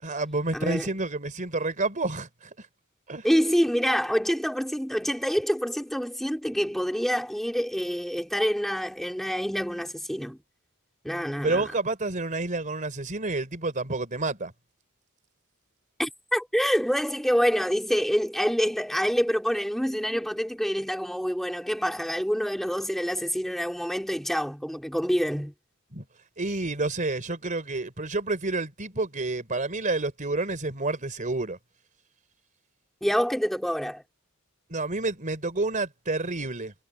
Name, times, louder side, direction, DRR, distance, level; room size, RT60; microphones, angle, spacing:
voice 1, 0.0-2.3 3.1-3.3 11.4-14.5 25.9-26.0 26.4-31.6 34.7-36.7, right 2 dB, 35° right, 3.7 m, -29 dB
voice 2, 0.5-0.9 3.2-10.4 11.0-11.7 16.0-25.5 33.0-34.0, equal, ahead, 3.2 m, -26 dB
head